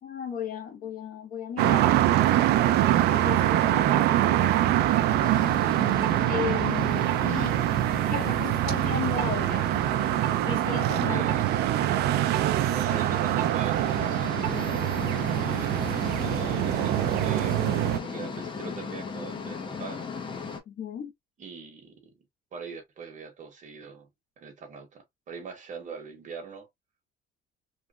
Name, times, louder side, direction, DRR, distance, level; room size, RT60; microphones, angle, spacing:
voice 1, 0.0-5.4 6.3-7.6 8.1-9.7 10.4-11.4 15.0-15.2 20.7-21.1, left 7 dB, 55° left, 1.1 m, -36 dB
sound 1, 1.6-18.0, right 13 dB, 75° right, 0.4 m, -24 dB
sound 2, 5.2-20.6, left 5 dB, 30° left, 0.7 m, -38 dB
voice 2, 11.0-11.5 12.6-14.3 15.1-20.1 21.4-22.1 22.5-24.1 24.4-26.7, right 5 dB, 45° right, 1.1 m, -42 dB
3.1 x 2.2 x 2.4 m
cardioid pair, 110°, 17 cm